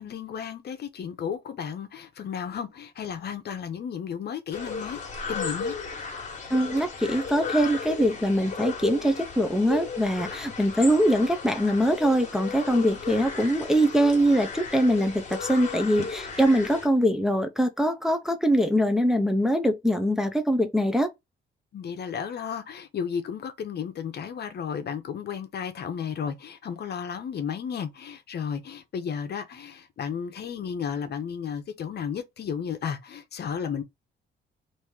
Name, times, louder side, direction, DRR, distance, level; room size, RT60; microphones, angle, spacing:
voice 1, 0.0-5.0 5.3-5.7 16.0-16.1 21.7-33.8, left 7 dB, 55° left, 0.8 m, -33 dB
sound 1, 4.5-16.9, left 4 dB, 40° left, 1.3 m, -35 dB
voice 2, 6.5-21.1, equal, ahead, 0.5 m, -23 dB
3.1 x 2.6 x 3.5 m
cardioid pair, 90°, 20 cm